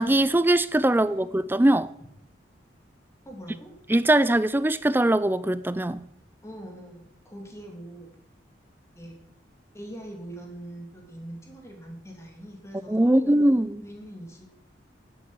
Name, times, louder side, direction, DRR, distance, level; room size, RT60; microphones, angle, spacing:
voice 1, 0.0-1.9 3.9-6.1 12.9-13.8, right 1 dB, 10° right, 0.4 m, -21 dB
voice 2, 0.9-1.4 3.2-3.7 6.4-8.1 9.0-9.2 9.7-13.4 13.8-14.5, right 1 dB, 15° left, 3.0 m, -42 dB
11.0 x 8.7 x 7.5 m
head